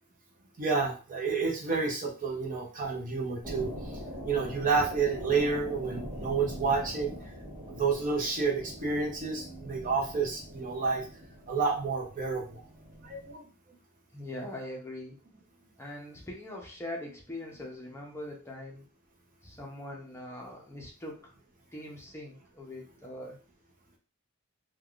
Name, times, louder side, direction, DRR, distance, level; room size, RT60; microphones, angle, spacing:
voice 1, 0.6-3.7 4.2-7.3 7.7-11.1 11.5-12.6 13.0-13.4, right 4 dB, 40° right, 0 dB, 0.7 m, -30 dB
sound 1, 3.4-13.3, equal, 10° right, 1.1 m, -43 dB
voice 2, 14.1-15.2 15.8-18.8 19.4-21.2 21.7-23.4, left 1 dB, 10° left, -1 dB, 0.6 m, -42 dB
3.3 x 2.2 x 2.4 m, 0.36 s
head